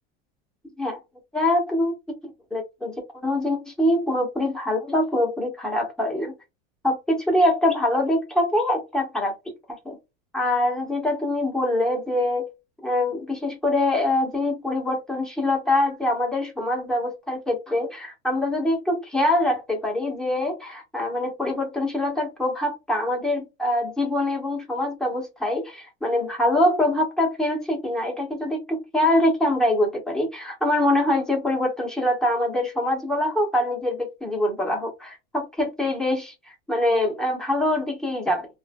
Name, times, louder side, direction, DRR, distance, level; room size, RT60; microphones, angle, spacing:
voice 1, 1.3-1.9 2.5-6.3 6.8-9.3 9.8-10.0 10.3-12.5 12.8-38.5, left 1 dB, ahead, 1.2 m, -24 dB
3.1 x 2.6 x 2.2 m
supercardioid pair, 130°, 30 cm